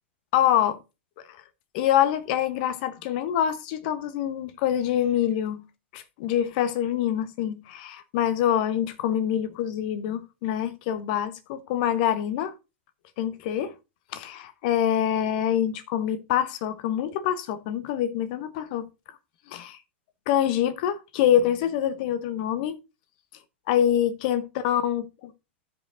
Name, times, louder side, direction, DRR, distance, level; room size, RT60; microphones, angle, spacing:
voice 1, 0.3-0.8 1.3-1.4 1.7-5.6 5.9-12.5 13.2-13.7 14.1-18.9 19.5-19.8 20.3-22.8 23.7-25.0, left 10 dB, 45° left, 0.9 m, -25 dB
15.0 x 5.2 x 2.5 m
figure-of-eight pair, 95°, 6 cm